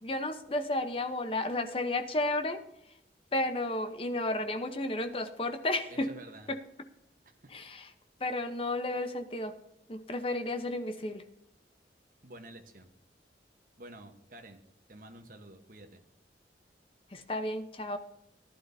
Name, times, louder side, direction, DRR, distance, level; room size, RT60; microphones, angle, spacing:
voice 1, 0.0-2.6 3.3-6.1 6.5-6.6 7.5-7.9 8.2-9.5 9.9-11.2 17.1-18.0, left 2 dB, 30° left, 8 dB, 0.9 m, -32 dB
voice 2, 5.9-6.5 7.4-7.5 12.2-12.9 13.8-14.6 14.9-16.0, right 1 dB, 50° right, 5 dB, 1.2 m, -50 dB
15.5 x 11.5 x 2.7 m, 0.81 s
head